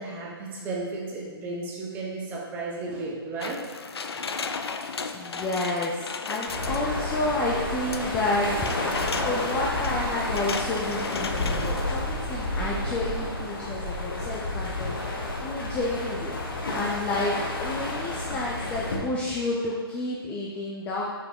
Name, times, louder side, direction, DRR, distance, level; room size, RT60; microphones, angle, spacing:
voice 1, 0.0-3.6, right 3 dB, 15° right, -3 dB, 0.9 m, -34 dB
sound 1, 3.4-7.1 7.9-12.3 12.7-12.8, left 5 dB, 75° left, 0.4 m, -35 dB
voice 2, 5.1-8.5 9.2-16.3 16.7-21.1, left 2 dB, 10° left, -4 dB, 0.3 m, -30 dB
sound 2, 6.5-19.0, left 2 dB, 55° left, 1.2 m, -30 dB
5.6 x 4.7 x 3.6 m, 1.5 s
figure-of-eight pair, 145°, 13 cm